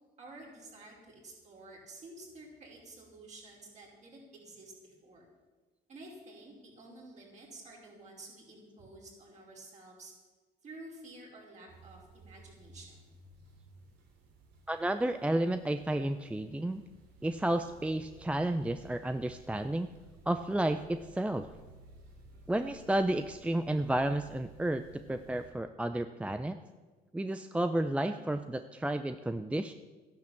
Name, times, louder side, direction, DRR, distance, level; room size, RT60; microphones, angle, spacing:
voice 1, 0.2-5.3 5.9-10.1 10.6-13.1, right 2 dB, 45° right, -2 dB, 5.2 m, -51 dB
sound 1, 11.7-25.5, right 2 dB, 85° right, 3.1 m, -56 dB
voice 2, 14.7-16.8 17.2-19.9 20.3-21.5 22.5-26.6 27.1-29.7, right 1 dB, 5° right, 9 dB, 0.5 m, -32 dB
13.5 x 10.5 x 7.2 m, 1.3 s
cardioid pair, 110°, 17 cm